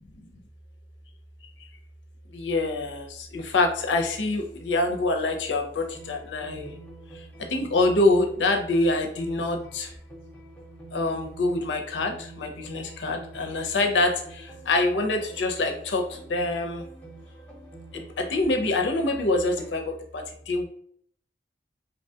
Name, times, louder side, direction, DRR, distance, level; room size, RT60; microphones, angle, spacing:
voice 1, 2.3-6.7 7.5-9.9 10.9-16.8 17.9-20.6, left 2 dB, 90° left, 4 dB, 0.5 m, -25 dB
sound 1, 5.9-19.7, right 2 dB, 10° left, 0.6 m, -48 dB
2.8 x 2.2 x 2.7 m, 0.62 s
head